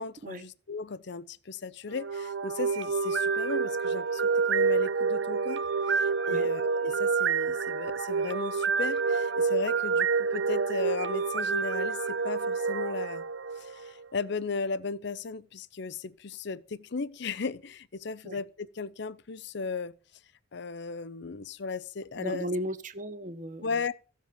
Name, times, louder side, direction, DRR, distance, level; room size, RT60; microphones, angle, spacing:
voice 1, 0.0-4.2 4.5-13.2 13.5-19.9 20.5-22.5 23.6-23.9, left 4 dB, 65° left, 0.7 m, -36 dB
sound 1, 1.9-14.0, right 5 dB, 70° right, 0.7 m, -28 dB
voice 2, 22.1-23.7, equal, 45° right, 1.3 m, -35 dB
15.0 x 7.5 x 6.9 m
head